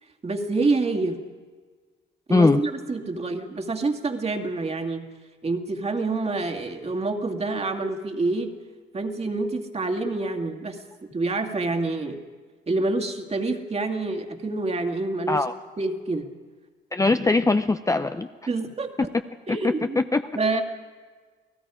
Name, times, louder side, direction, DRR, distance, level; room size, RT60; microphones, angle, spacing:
voice 1, 0.2-1.2 2.3-5.0 5.4-8.5 8.9-10.8 11.1-12.2 12.7-15.4 15.8-16.3 18.5-19.1 19.5-20.0 20.4-20.6, right 3 dB, 30° right, 4 dB, 2.3 m, -27 dB
voice 2, 2.3-2.6 15.3-15.5 16.9-18.3 19.5-20.2, left 3 dB, 15° left, 9 dB, 0.7 m, -21 dB
29.5 x 18.0 x 5.1 m, 1.5 s
cardioid pair, 90°, 20 cm